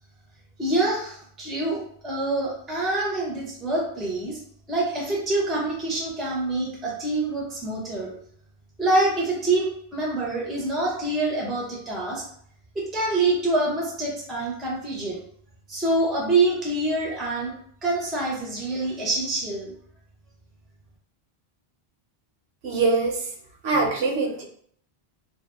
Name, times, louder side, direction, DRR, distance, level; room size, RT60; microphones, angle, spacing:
voice 1, 0.6-4.4 4.7-8.1 8.8-12.2 12.7-15.2 15.7-17.5 17.8-19.7, right 2 dB, ahead, -3 dB, 0.4 m, -26 dB
voice 2, 22.6-23.3 23.6-24.4, right 3 dB, 80° right, 1 dB, 0.8 m, -23 dB
2.5 x 2.2 x 2.3 m, 0.63 s
omnidirectional pair, 1.1 m